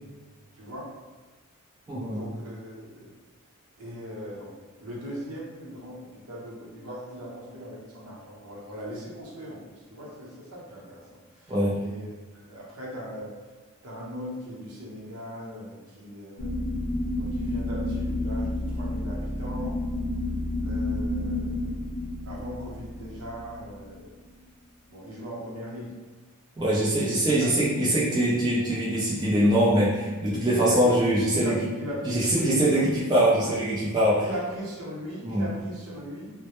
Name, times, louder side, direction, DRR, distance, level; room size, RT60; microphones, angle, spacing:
voice 1, 0.5-0.9 2.0-3.1 3.8-12.1 12.4-13.4 13.8-16.5 17.2-19.8 20.6-21.9 22.2-24.1 24.9-25.9 27.3-27.5 30.5-31.0 31.3-32.9 33.4-33.6 34.2-36.4, equal, 70° right, -6 dB, 0.8 m, -39 dB
voice 2, 1.9-2.2 11.5-11.8 26.6-31.6 32.0-34.3 35.2-35.5, right 1 dB, 20° right, -7 dB, 0.4 m, -23 dB
sound 1, 16.4-24.3, left 1 dB, 65° left, 0.5 m, -30 dB
2.1 x 2.0 x 2.9 m, 1.3 s
head